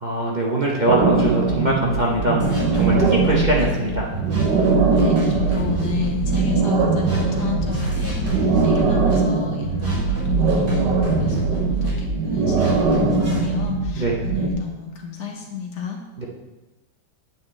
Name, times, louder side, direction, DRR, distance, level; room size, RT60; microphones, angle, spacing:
voice 1, 0.0-4.1 14.0-14.1 16.2-16.3, right 2 dB, 35° right, -4 dB, 0.8 m, -22 dB
sound 1, 0.8-14.5, right 3 dB, 85° right, 1.8 m, -21 dB
sound 2, 2.4-3.6 4.1-6.4 6.9-9.1 9.6-11.9 12.4-13.4, right 3 dB, 55° right, 3.0 m, -26 dB
voice 2, 5.0-16.0, left 6 dB, 75° left, 1 dB, 1.9 m, -32 dB
8.8 x 8.4 x 3.3 m, 1.1 s
omnidirectional pair, 1.9 m